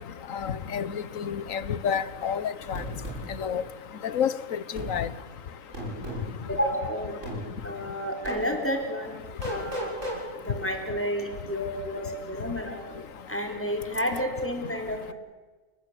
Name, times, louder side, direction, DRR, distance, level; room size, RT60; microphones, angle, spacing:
voice 1, 0.3-2.8 3.4-3.6 4.0-5.1, left 8 dB, 80° left, 16 dB, 1.4 m, -29 dB
sound 1, 2.7-3.2 4.7-4.9 5.7-6.3 7.2-7.4 8.2-8.4 9.4-10.2, equal, 70° right, 7.8 m, -33 dB
voice 2, 6.5-7.1 7.6-9.1 9.5-9.9 10.4-12.8 13.3-15.1, equal, 10° left, 2 dB, 4.5 m, -30 dB
29.5 x 19.5 x 8.5 m, 1.4 s
omnidirectional pair, 1.4 m